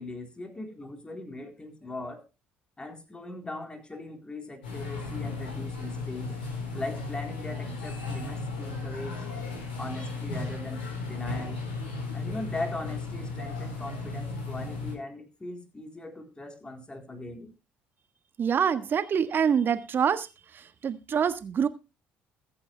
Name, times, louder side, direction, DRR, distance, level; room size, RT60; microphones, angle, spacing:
voice 1, 0.0-2.2 2.8-6.4 6.7-9.3 9.8-11.6 12.1-17.5, left 2 dB, 20° left, 4 dB, 3.8 m, -39 dB
sound 1, 4.6-14.9, left 3 dB, 75° left, 4.8 m, -35 dB
voice 2, 18.4-20.3 20.5-21.7, right 7 dB, 40° right, 12 dB, 1.4 m, -26 dB
22.0 x 8.7 x 2.3 m, 0.28 s
figure-of-eight pair, 55°, 5 cm